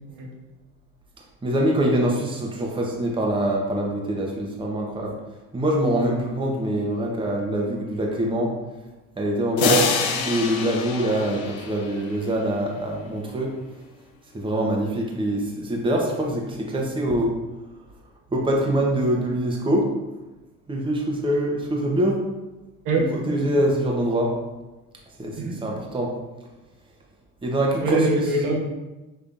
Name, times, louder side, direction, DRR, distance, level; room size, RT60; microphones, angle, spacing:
voice 1, 1.4-5.1 5.5-8.5 9.2-13.5 14.3-17.3 18.3-19.8 20.7-22.2 22.9-24.3 25.2-26.1 27.4-28.0, right 1 dB, 15° right, -1 dB, 0.9 m, -24 dB
sound 1, 9.6-12.3, left 6 dB, 70° left, 0.7 m, -26 dB
voice 2, 22.8-23.4 25.4-25.5 27.8-28.6, right 2 dB, 60° right, -1 dB, 1.1 m, -23 dB
5.5 x 3.2 x 2.5 m, 1.1 s
hypercardioid pair, 75°, 36 cm